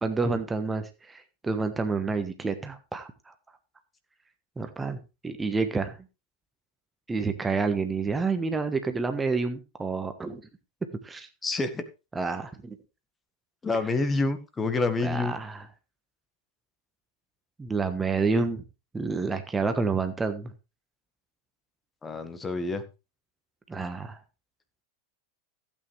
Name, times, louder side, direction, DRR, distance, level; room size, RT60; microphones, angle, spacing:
voice 1, 0.0-3.3 4.6-5.0 5.2-6.0 7.1-10.4 11.0-11.3 12.1-12.8 15.0-15.6 17.6-18.6 18.9-20.5 23.7-24.2, right 4 dB, 10° right, 8 dB, 1.3 m, -29 dB
voice 2, 11.4-11.8 13.6-15.4 22.0-22.8, left 3 dB, 15° left, 10 dB, 1.5 m, -27 dB
15.5 x 8.7 x 3.4 m, 0.29 s
figure-of-eight pair, 90°, 0 cm